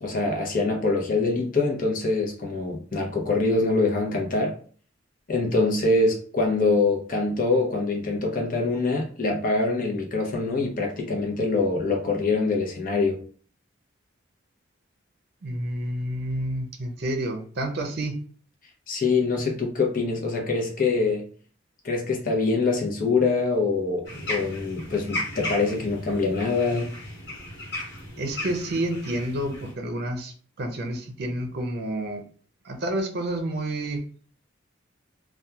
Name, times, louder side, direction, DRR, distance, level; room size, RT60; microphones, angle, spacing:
voice 1, 0.0-4.6 5.3-13.2 18.9-21.2 21.8-26.9, left 3 dB, 45° left, 1 dB, 0.7 m, -24 dB
voice 2, 15.4-18.2 28.2-32.2 32.6-34.1, right 1 dB, 55° right, 4 dB, 0.5 m, -29 dB
sound 1, 24.0-29.7, left 1 dB, 60° left, 1.2 m, -35 dB
2.8 x 2.3 x 2.3 m, 0.44 s
head